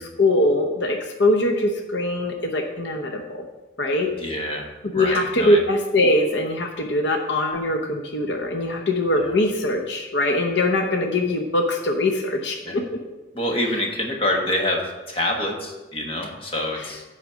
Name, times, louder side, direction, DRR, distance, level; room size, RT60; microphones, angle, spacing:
voice 1, 0.0-3.5 3.8-4.1 4.9-12.8, left 1 dB, 70° left, 3 dB, 0.8 m, -22 dB
voice 2, 4.2-4.7 4.9-5.6 9.2-9.4 12.6-12.8 13.3-17.0, left 1 dB, 30° left, 1 dB, 1.3 m, -26 dB
10.0 x 4.2 x 6.2 m, 1.1 s
head